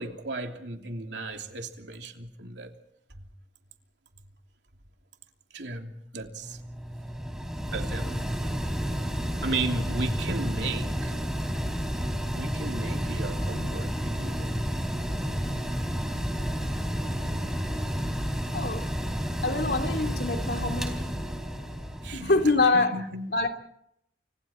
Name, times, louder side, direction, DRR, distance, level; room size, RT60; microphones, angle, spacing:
voice 1, 0.0-2.7 5.5-6.6 7.7-8.8 9.4-11.1 12.3-14.7 17.2-17.5 22.0-22.3 22.7-23.3, right 2 dB, 85° right, 3.1 m, -35 dB
Mechanical fan, 6.4-22.7, equal, 5° right, 3.4 m, -31 dB
voice 2, 18.5-18.9 19.4-20.9 22.1-22.9 23.3-23.5, left 3 dB, 65° left, 2.9 m, -25 dB
29.0 x 25.5 x 4.5 m
head